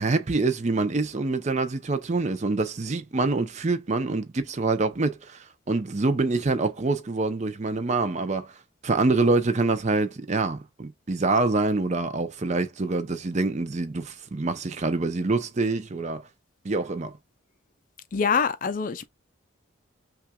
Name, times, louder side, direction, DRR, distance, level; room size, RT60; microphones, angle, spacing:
voice 1, 0.0-8.5 8.8-16.2 16.6-17.2, right 3 dB, 35° right, 0.5 m, -26 dB
voice 2, 18.1-19.1, left 6 dB, 40° left, 0.4 m, -25 dB
5.7 x 2.4 x 2.2 m
head